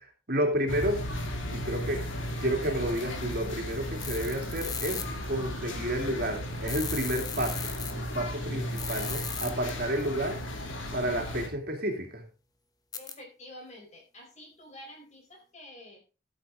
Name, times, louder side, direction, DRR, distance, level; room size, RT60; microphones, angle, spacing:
voice 1, 0.3-1.1 1.5-2.1 2.4-7.6 7.9-10.4 10.9-12.2, right 1 dB, 55° right, 3 dB, 2.7 m, -31 dB
sound 1, 0.7-11.5, equal, 90° left, 2.4 m, -35 dB
sound 2, 4.0-5.0 6.7-7.9 8.7-9.7 12.9-13.1, left 6 dB, 20° left, 1.0 m, -37 dB
voice 2, 12.9-16.0, left 1 dB, 35° left, 1 dB, 4.3 m, -48 dB
13.0 x 7.6 x 3.8 m, 0.34 s
head